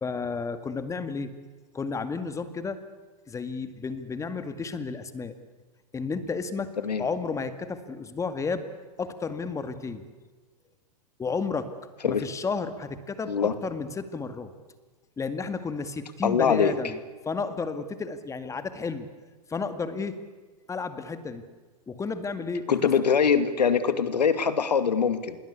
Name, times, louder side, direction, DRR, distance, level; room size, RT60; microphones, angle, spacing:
voice 1, 0.0-1.3 1.7-2.8 3.3-5.3 5.9-6.7 7.0-8.6 9.0-10.0 11.2-11.7 12.0-14.5 15.2-17.0 17.2-19.1 19.5-20.2 20.7-21.4 21.9-22.9, left 4 dB, 15° left, 10 dB, 2.1 m, -32 dB
voice 2, 16.2-16.7 22.7-25.4, left 6 dB, 85° left, 11 dB, 2.4 m, -23 dB
27.5 x 22.0 x 8.4 m, 1.4 s
hypercardioid pair, 120°, 21 cm